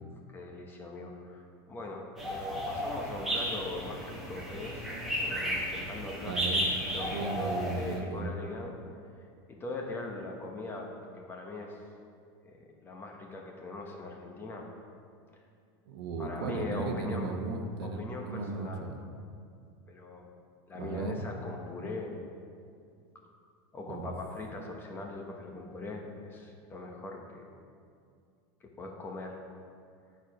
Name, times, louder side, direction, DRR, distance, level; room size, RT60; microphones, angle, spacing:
voice 1, 0.3-4.9 5.2-6.4 6.9-8.8 9.5-10.9 11.1-11.8 12.4-14.7 16.2-17.3 17.8-18.9 19.9-20.3 20.7-22.1 23.7-27.5 28.6-29.4, left 2 dB, 15° left, 1 dB, 0.8 m, -41 dB
sound 1, 2.2-8.0, equal, 5° right, 1.3 m, -33 dB
voice 2, 6.2-8.3 15.9-19.0 20.7-21.2 23.9-24.1, right 4 dB, 70° right, 4 dB, 0.9 m, -36 dB
9.2 x 4.7 x 5.0 m, 2.3 s
supercardioid pair, 160°, 13 cm